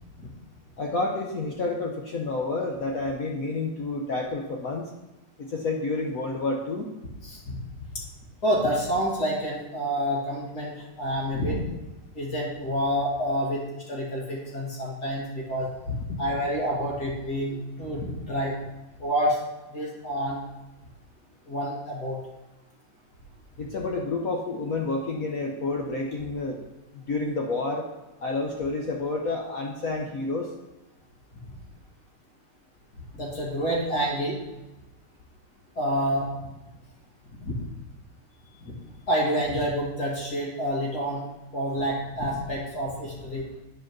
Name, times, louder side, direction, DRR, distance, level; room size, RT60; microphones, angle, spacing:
voice 1, 0.8-4.9 5.4-6.9 23.6-26.6 26.9-27.9 28.2-30.5, left 3 dB, 65° left, 1 dB, 0.9 m, -29 dB
voice 2, 7.2-7.5 8.4-11.6 12.1-18.6 19.0-19.4 19.7-20.4 21.5-22.2 33.1-34.4 35.8-36.3 37.4-37.5 38.7-38.8 39.1-41.2 41.5-43.4, equal, 45° left, -4 dB, 2.5 m, -28 dB
9.1 x 4.7 x 6.1 m, 1.0 s
omnidirectional pair, 2.4 m